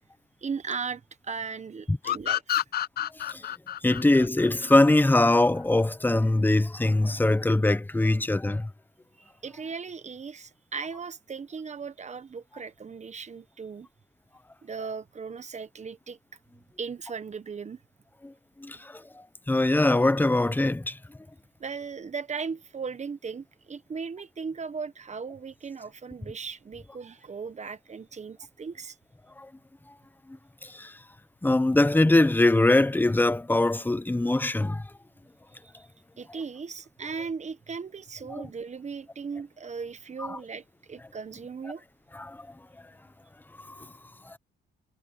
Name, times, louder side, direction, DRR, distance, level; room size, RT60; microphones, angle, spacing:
voice 1, 0.4-2.6 9.2-13.9 14.6-16.2 16.8-17.8 21.6-29.0 35.7-35.9 36.2-41.8, right 5 dB, 35° right, 1.4 m, -37 dB
sound 1, 2.0-5.4, left 11 dB, 50° left, 0.4 m, -30 dB
voice 2, 3.1-3.5 3.8-8.7 18.2-18.3 18.6-21.0 29.4-29.5 30.3-31.0 31.4-34.9 38.3-38.5 40.2-40.4 42.1-42.5 43.6-43.9 44.2-44.4, left 2 dB, 10° left, 1.0 m, -23 dB
cardioid pair, 90°, 20 cm